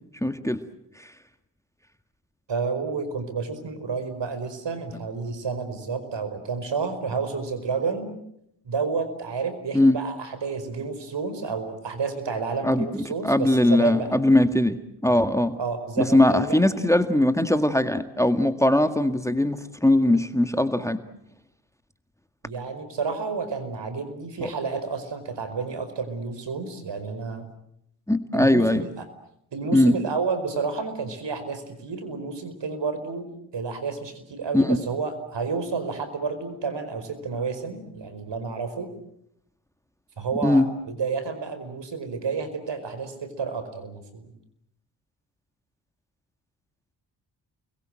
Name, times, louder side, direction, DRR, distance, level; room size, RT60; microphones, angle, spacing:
voice 1, 0.2-0.6 1.0-1.1 9.7-10.0 12.6-14.8 15.0-15.6 16.0-21.0 24.4-24.5 28.1-28.8 29.7-30.0 34.5-34.8 40.4-40.7, left 1 dB, 5° left, 9 dB, 2.0 m, -20 dB
voice 2, 2.5-8.1 8.6-14.2 15.6-16.6 22.4-27.4 28.3-29.0 29.5-33.3 33.5-38.9 40.2-44.3, right 5 dB, 60° right, 11 dB, 5.0 m, -30 dB
29.5 x 22.5 x 7.7 m, 0.76 s
supercardioid pair, 45°, 47 cm